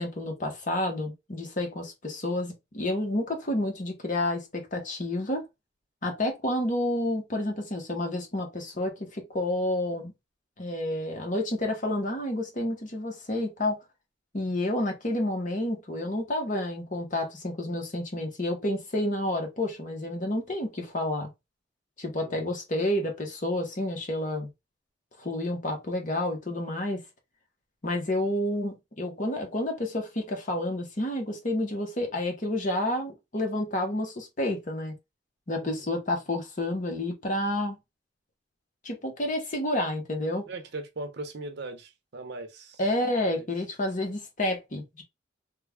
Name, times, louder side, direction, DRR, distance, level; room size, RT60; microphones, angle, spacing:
voice 1, 0.0-5.4 6.0-10.1 10.6-13.8 14.3-21.3 22.0-24.5 25.2-27.0 27.8-34.9 35.5-37.8 38.8-40.5 42.8-45.0, left 1 dB, 45° left, 1.0 m, -30 dB
voice 2, 40.5-42.8 43.2-43.5, right 2 dB, 60° right, 0.7 m, -39 dB
3.2 x 2.3 x 3.4 m
head